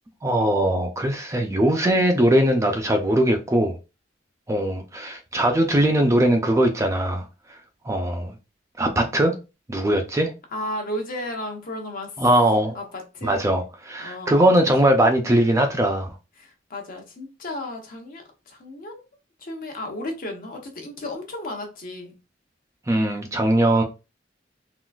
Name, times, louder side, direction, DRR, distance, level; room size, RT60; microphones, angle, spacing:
voice 1, 0.2-3.8 4.5-7.2 7.8-8.3 8.8-9.4 9.7-10.3 12.2-12.8 13.2-16.1 22.9-23.8, right 1 dB, 15° right, 0.4 m, -20 dB
voice 2, 10.5-12.2 12.7-13.4 14.0-14.5 16.4-19.0 19.4-22.1, left 1 dB, 50° left, 0.8 m, -34 dB
3.8 x 2.4 x 2.3 m
head